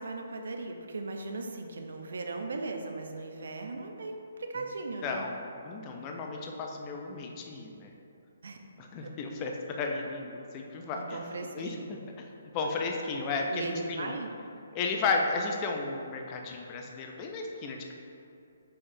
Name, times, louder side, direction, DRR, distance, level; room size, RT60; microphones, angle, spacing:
voice 1, 0.0-5.2 8.4-8.6 10.9-12.0 13.5-14.3, right 3 dB, 75° right, 4 dB, 0.5 m, -38 dB
voice 2, 5.0-7.9 8.8-11.2 11.5-11.8 12.2-12.3 12.5-14.2 14.7-18.0, left 4 dB, 25° left, 1 dB, 0.4 m, -33 dB
5.6 x 3.2 x 2.6 m, 2.6 s
hypercardioid pair, 155°, 0 cm